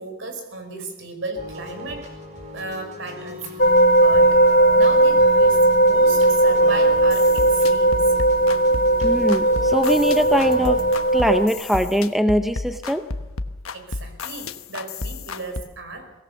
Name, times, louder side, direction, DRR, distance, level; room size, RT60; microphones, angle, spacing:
voice 1, 0.0-2.1 2.5-4.4 4.8-8.2 13.7-16.1, right 3 dB, 60° right, 6 dB, 5.1 m, -35 dB
sound 1, 1.4-11.0, left 1 dB, 35° right, 4.9 m, -38 dB
sound 2, 3.6-11.5, right 1 dB, 40° left, 0.9 m, -17 dB
sound 3, 7.0-15.6, left 3 dB, 85° left, 1.2 m, -32 dB
voice 2, 9.0-10.8 11.1-13.0, equal, ahead, 8 dB, 0.7 m, -21 dB
23.0 x 18.0 x 7.0 m, 1.1 s
head